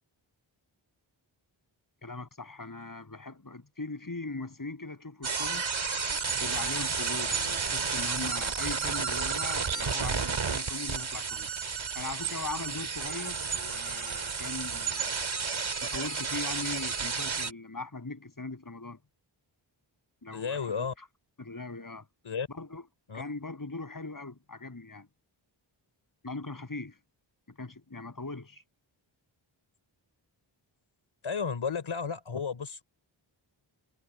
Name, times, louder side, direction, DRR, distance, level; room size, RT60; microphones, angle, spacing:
voice 1, 2.0-5.7 6.4-11.5 11.9-15.2 15.8-19.0 20.2-21.1 21.4-22.1 22.5-22.9 23.1-25.1 26.2-27.0 27.5-28.6, left 3 dB, 40° left, 7.7 m, -40 dB
sound 1, 5.2-17.5, right 5 dB, 70° right, 4.0 m, -32 dB
voice 2, 20.3-20.9 22.2-22.5 23.1-23.2 31.2-32.8, left 6 dB, 75° left, 3.8 m, -33 dB
cardioid pair, 50°, 48 cm